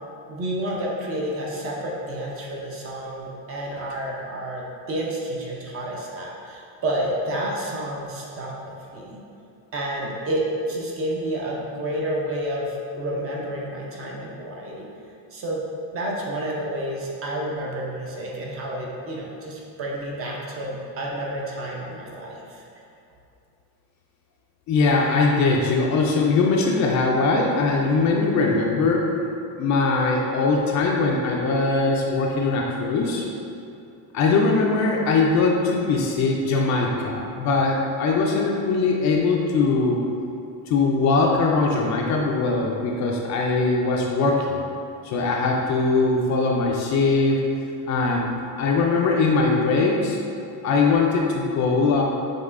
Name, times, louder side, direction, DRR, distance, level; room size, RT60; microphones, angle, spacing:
voice 1, 0.3-9.2 9.7-14.9 15.3-15.6 15.9-22.6, right 1 dB, 30° right, -3 dB, 0.5 m, -30 dB
voice 2, 24.7-29.1 29.6-33.3 34.1-40.0 40.7-44.6 45.0-47.5 47.9-48.3 48.6-50.2 50.6-52.0, left 3 dB, 45° left, -1 dB, 0.4 m, -21 dB
5.3 x 3.6 x 2.5 m, 2.7 s
cardioid pair, 165°, 43 cm